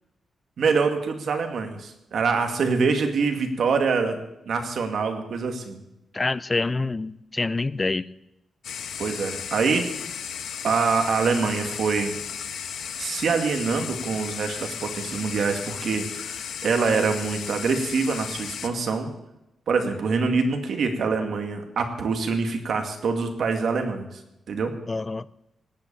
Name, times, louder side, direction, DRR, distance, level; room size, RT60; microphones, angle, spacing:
voice 1, 0.6-4.2 4.5-5.8 9.0-9.9 10.6-12.1 13.0-19.1 19.7-24.1 24.5-24.7, right 4 dB, 60° right, 5 dB, 2.2 m, -25 dB
voice 2, 6.1-8.1 24.9-25.3, left 3 dB, 20° left, 17 dB, 0.5 m, -26 dB
sound 1, 8.6-18.7, left 8 dB, 85° left, 1.1 m, -35 dB
18.5 x 8.3 x 8.8 m, 0.89 s
wide cardioid pair, 135°, 0 cm